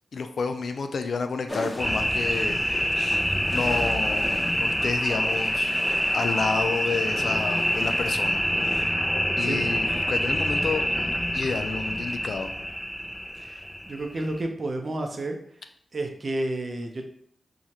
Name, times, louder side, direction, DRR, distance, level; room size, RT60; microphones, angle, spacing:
voice 1, 0.1-5.7 6.1-8.9 9.4-10.8 11.3-12.5, left 4 dB, 75° left, 7 dB, 0.4 m, -30 dB
sound 1, 1.5-8.3, left 1 dB, 35° left, 1.0 m, -41 dB
sound 2, 1.8-14.4, equal, 5° left, 0.6 m, -26 dB
voice 2, 13.9-15.4 15.9-17.1, right 2 dB, 55° right, 3 dB, 0.7 m, -31 dB
4.7 x 2.4 x 2.8 m, 0.65 s
cardioid pair, 50°, 0 cm